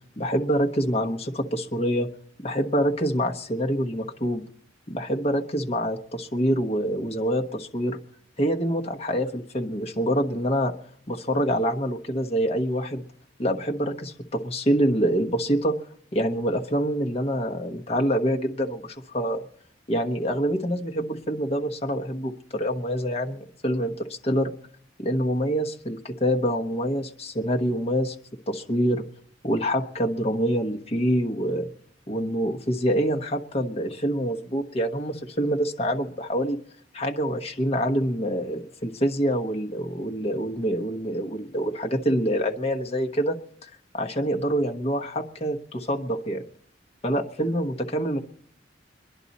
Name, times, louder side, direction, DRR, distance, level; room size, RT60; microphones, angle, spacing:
voice 1, 0.2-2.1 2.4-4.4 4.9-8.0 8.4-10.7 11.1-13.0 13.4-15.7 16.1-19.5 19.9-24.5 25.0-28.1 28.5-29.0 29.4-31.7 32.1-36.6 36.9-46.4 47.0-48.2, equal, 35° left, 2 dB, 1.2 m, -26 dB
24.5 x 11.0 x 4.2 m, 0.62 s
head